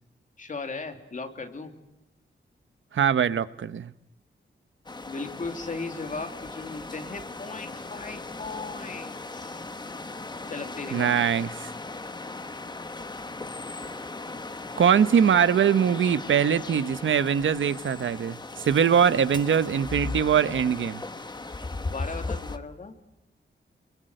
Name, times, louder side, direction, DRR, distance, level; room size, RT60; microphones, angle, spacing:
voice 1, 0.4-1.7 5.1-9.7 10.5-11.2 21.8-23.0, left 4 dB, 40° left, 2.9 m, -37 dB
voice 2, 2.9-3.9 10.9-11.7 14.8-21.0, right 8 dB, 85° right, 1.0 m, -22 dB
sound 1, 4.9-22.6, left 3 dB, 20° left, 1.3 m, -37 dB
27.5 x 23.5 x 7.9 m
wide cardioid pair, 170°, 19 cm